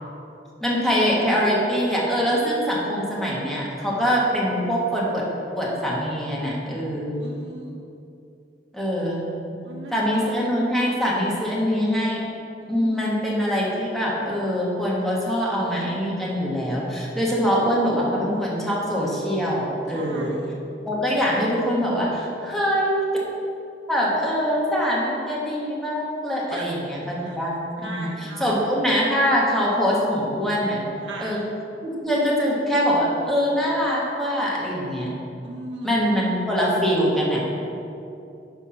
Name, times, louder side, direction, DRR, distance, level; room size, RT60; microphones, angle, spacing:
voice 1, 0.6-5.2 5.5-7.2 8.7-9.3 9.9-12.2 12.7-20.4 20.8-23.0 23.9-30.8 31.2-31.4 31.8-35.1 35.8-37.4, equal, ahead, -5 dB, 1.5 m, -23 dB
voice 2, 7.2-7.8 9.6-10.3 12.6-13.2 19.9-20.6 26.5-26.7 27.2-27.4 27.8-28.7 31.0-31.4 35.4-36.4, right 2 dB, 85° right, -1 dB, 0.7 m, -38 dB
9.9 x 3.5 x 5.7 m, 2.7 s
head